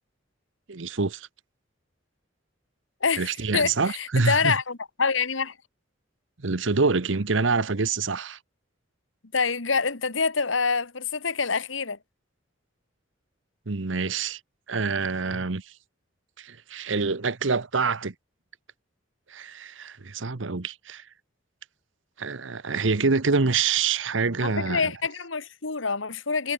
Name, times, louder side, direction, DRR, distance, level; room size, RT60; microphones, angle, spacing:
voice 1, 0.7-1.3 3.2-4.6 6.4-8.4 13.7-14.4 14.7-15.6 16.4-18.1 19.3-21.0 22.2-24.9, right 4 dB, 75° right, 1.0 m, -26 dB
voice 2, 3.0-5.5 9.3-12.0 24.4-26.5, left 5 dB, 80° left, 1.9 m, -26 dB
head